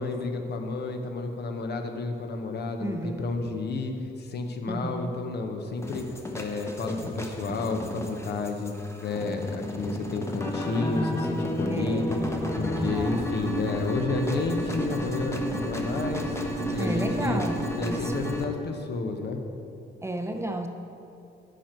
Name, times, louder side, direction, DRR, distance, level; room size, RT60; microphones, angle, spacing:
voice 1, 0.0-6.0 6.3-8.7 9.0-12.2 12.5-16.4 16.7-17.4 17.7-19.4, left 3 dB, 55° left, 4 dB, 1.0 m, -31 dB
voice 2, 2.8-3.3 4.7-5.1 11.7-12.1 12.7-13.3 16.8-18.2 20.0-20.7, right 1 dB, 15° right, 5 dB, 0.7 m, -32 dB
sound 1, 5.8-18.4, equal, 15° left, 1.0 m, -32 dB
10.0 x 6.0 x 4.5 m, 2.7 s
cardioid pair, 90°, 20 cm